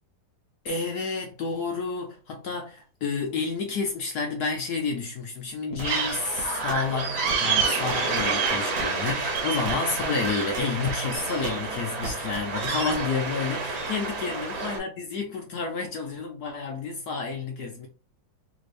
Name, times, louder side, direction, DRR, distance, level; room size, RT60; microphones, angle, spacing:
voice 1, 0.6-17.9, left 4 dB, 70° left, 1.0 m, -30 dB
sound 1, 5.8-14.8, right 4 dB, 60° right, 1.6 m, -28 dB
sound 2, 5.8-6.1 6.4-7.0 7.3-13.0, right 6 dB, 80° right, 1.5 m, -35 dB
3.4 x 3.2 x 2.5 m
omnidirectional pair, 2.2 m